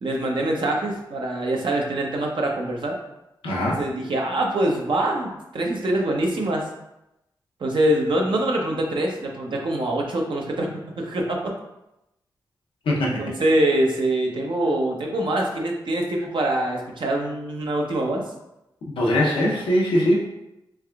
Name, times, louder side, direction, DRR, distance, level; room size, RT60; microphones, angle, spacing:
voice 1, 0.0-3.0 3.8-6.7 7.6-10.7 11.0-11.4 13.2-18.2, right 1 dB, 65° right, 0 dB, 0.7 m, -24 dB
voice 2, 3.4-3.8 12.9-13.3 18.9-20.2, equal, 90° left, -3 dB, 0.7 m, -21 dB
3.4 x 3.3 x 2.3 m, 0.88 s
cardioid pair, 50°, 9 cm